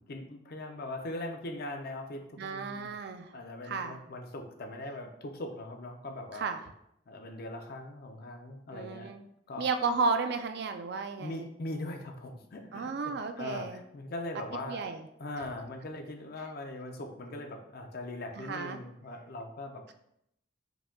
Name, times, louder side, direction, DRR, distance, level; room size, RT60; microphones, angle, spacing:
voice 1, 0.0-2.9 3.3-6.5 7.1-9.1 9.5-9.7 11.2-14.9 15.2-19.8, left 2 dB, 50° left, 4 dB, 0.5 m, -40 dB
voice 2, 2.4-3.3 3.6-4.0 6.3-6.6 8.7-9.3 9.6-11.5 12.7-13.8 14.7-15.0 18.4-18.8, right 4 dB, 55° right, 7 dB, 0.3 m, -33 dB
4.8 x 2.2 x 3.6 m, 0.78 s
head